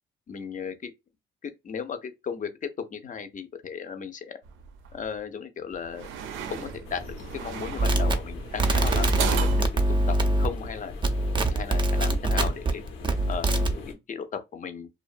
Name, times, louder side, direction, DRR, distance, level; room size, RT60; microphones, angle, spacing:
voice 1, 0.3-0.9 1.4-4.4 4.9-6.1 6.5-9.7 10.1-10.9 11.5-12.8 13.3-14.9, left 6 dB, 40° left, 0.5 m, -36 dB
sound 1, 4.4-5.1 5.7-9.7, right 7 dB, 80° right, 0.5 m, -35 dB
sound 2, 6.8-13.9, left 3 dB, 80° left, 0.8 m, -41 dB
sound 3, 7.8-10.7 11.0-12.7 13.0-13.7, right 1 dB, 25° right, 0.5 m, -23 dB
2.5 x 2.2 x 2.4 m
cardioid pair, 90°, 20 cm